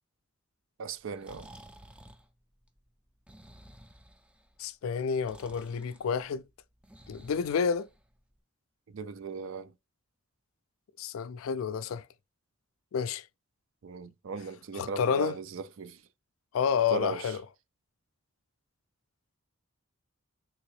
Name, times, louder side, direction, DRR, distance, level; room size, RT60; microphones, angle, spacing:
voice 1, 0.8-1.5 8.9-9.7 13.8-16.0 16.9-17.3, right 5 dB, 70° right, 0.4 m, -38 dB
Breathing, 0.9-8.4, right 1 dB, 5° right, 0.3 m, -54 dB
voice 2, 4.6-6.4 7.1-7.9 11.0-12.0 12.9-13.2 14.7-15.4 16.5-17.4, left 6 dB, 90° left, 0.4 m, -29 dB
3.5 x 2.8 x 3.0 m
head